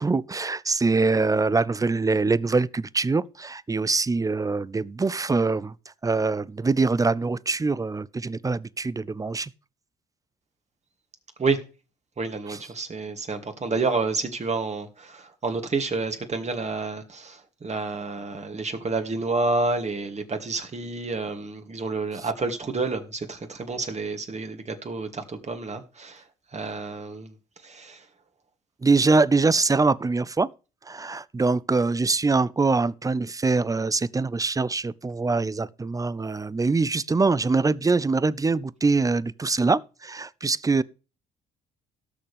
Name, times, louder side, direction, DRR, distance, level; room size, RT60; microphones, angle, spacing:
voice 1, 0.0-5.7 6.0-9.5 12.5-12.6 28.8-30.5 30.9-40.8, right 3 dB, 15° right, 0.6 m, -23 dB
voice 2, 12.2-26.2 26.5-27.3 27.6-28.0, right 3 dB, 35° right, 2.5 m, -29 dB
18.0 x 6.6 x 3.4 m
hypercardioid pair, 50°, 20 cm